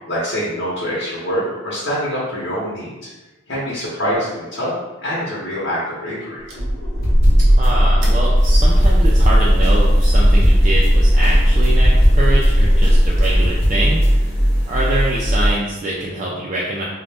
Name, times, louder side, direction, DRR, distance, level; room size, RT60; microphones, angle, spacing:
voice 1, 0.0-3.1 3.5-4.7 5.0-6.4, equal, 80° left, -8 dB, 0.8 m, -25 dB
sound 1, 6.5-13.9, equal, 85° right, 0.6 m, -15 dB
sound 2, 7.0-7.7 8.0-10.9 11.2-14.1, equal, 50° left, 0.5 m, -26 dB
voice 2, 7.5-14.3 14.7-16.8, right 1 dB, 40° right, -5 dB, 0.3 m, -24 dB
sound 3, 8.3-15.6, equal, 5° left, 0.9 m, -19 dB
2.5 x 2.1 x 3.3 m, 1.1 s
head